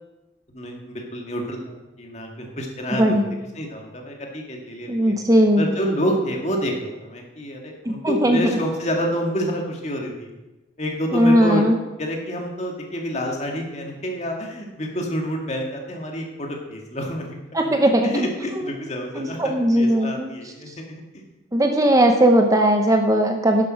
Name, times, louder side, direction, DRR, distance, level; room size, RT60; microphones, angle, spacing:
voice 1, 0.5-3.0 3.6-5.2 5.6-10.3 10.8-11.7 12.0-17.4 17.6-21.0, equal, 35° left, 1 dB, 2.0 m, -28 dB
voice 2, 2.9-3.3 4.9-5.7 7.9-8.4 11.1-11.7 17.5-18.1 19.2-20.3 21.5-23.7, equal, 20° right, 4 dB, 0.8 m, -18 dB
11.0 x 7.5 x 6.3 m, 1.0 s
head